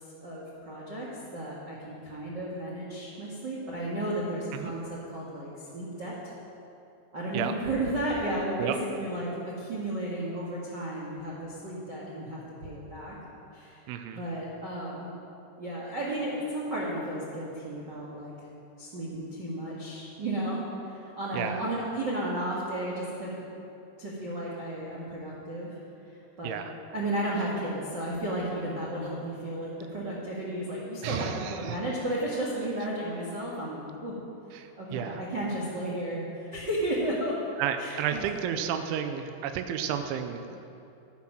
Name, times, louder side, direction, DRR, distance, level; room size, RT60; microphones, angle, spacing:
voice 1, 0.2-6.2 7.1-13.1 13.5-13.8 14.1-15.1 15.6-18.3 18.8-23.3 24.0-25.8 26.4-26.6 26.9-34.1 34.8-38.6, right 1 dB, 70° right, -5 dB, 1.0 m, -33 dB
voice 2, 13.9-14.2 21.3-21.6 26.4-26.6 31.0-31.3 31.7-31.8 34.6-35.2 37.6-40.7, right 9 dB, 90° right, 7 dB, 3.1 m, -32 dB
14.5 x 9.9 x 6.1 m, 2.8 s
omnidirectional pair, 5.4 m